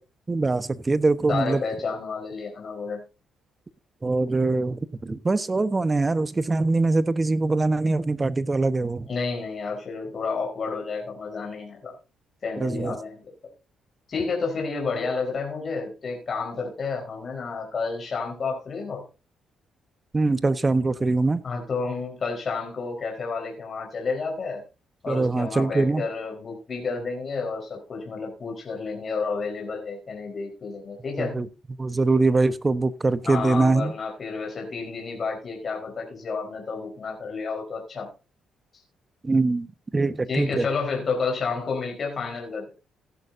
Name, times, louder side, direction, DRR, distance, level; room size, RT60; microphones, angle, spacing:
voice 1, 0.3-1.6 4.0-9.1 12.6-13.0 20.1-21.4 25.1-26.0 31.2-31.5 31.8-33.9 39.2-39.7 39.9-40.7, right 3 dB, 25° right, 1.0 m, -23 dB
voice 2, 1.3-3.0 9.1-11.9 12.4-13.2 14.1-19.0 21.4-24.6 25.0-31.5 33.3-38.1 38.7-38.8 40.3-42.7, left 4 dB, 45° left, 4.2 m, -30 dB
16.0 x 11.0 x 2.7 m
cardioid pair, 90°, 0 cm